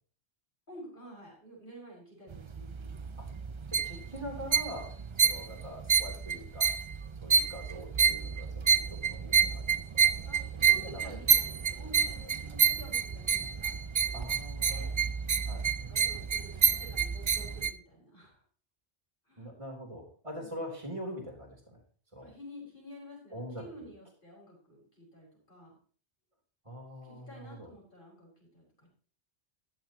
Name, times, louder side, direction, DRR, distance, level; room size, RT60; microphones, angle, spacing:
voice 1, 0.7-3.6 10.3-10.4 10.7-13.7 14.0-14.3 14.7-14.9 15.7-18.4 19.3-19.5 20.4-20.7 22.2-25.7 27.0-28.9, equal, 45° left, -3 dB, 5.6 m, -51 dB
sound 1, 2.3-17.7, right 6 dB, 50° right, 0.3 m, -29 dB
voice 2, 3.7-4.9 5.2-6.7 7.2-9.7 9.9-10.1 10.6-11.2 14.1-14.9 15.4-15.7 19.4-21.8 22.1-22.3 23.3-23.9 26.7-27.7, equal, 25° right, 1 dB, 3.4 m, -43 dB
14.0 x 11.0 x 2.9 m, 0.44 s
omnidirectional pair, 1.2 m